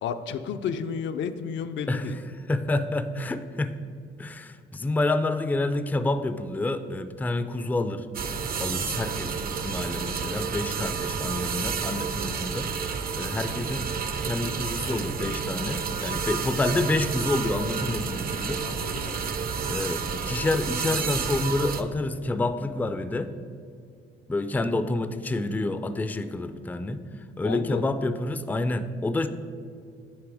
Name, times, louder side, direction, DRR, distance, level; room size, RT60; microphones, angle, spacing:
voice 1, 0.0-2.2 18.6-19.4 27.4-28.0, left 7 dB, 70° left, 9 dB, 0.5 m, -32 dB
voice 2, 1.9-2.2 2.5-3.8 4.2-8.1 8.6-13.9 14.2-18.6 19.0-19.3 19.7-23.3 24.3-27.0 27.4-29.3, left 2 dB, 10° left, 10 dB, 0.3 m, -28 dB
sound 1, 8.1-21.8, right 6 dB, 50° right, 0.5 m, -30 dB
9.6 x 3.2 x 4.8 m, 2.3 s
cardioid pair, 90°, 20 cm